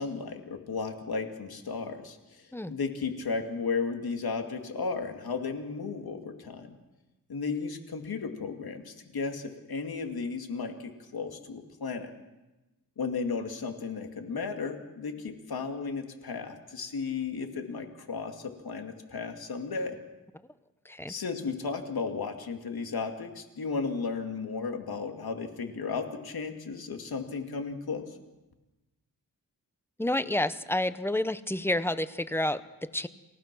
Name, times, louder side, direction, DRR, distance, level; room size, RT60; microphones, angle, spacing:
voice 1, 0.0-2.2 2.7-6.8 7.3-12.1 13.0-20.0 21.1-28.1, left 4 dB, 75° left, 5 dB, 2.4 m, -34 dB
voice 2, 30.0-33.1, left 1 dB, 5° left, 13 dB, 0.6 m, -29 dB
28.5 x 17.0 x 6.1 m, 1.1 s
wide cardioid pair, 170°, 37 cm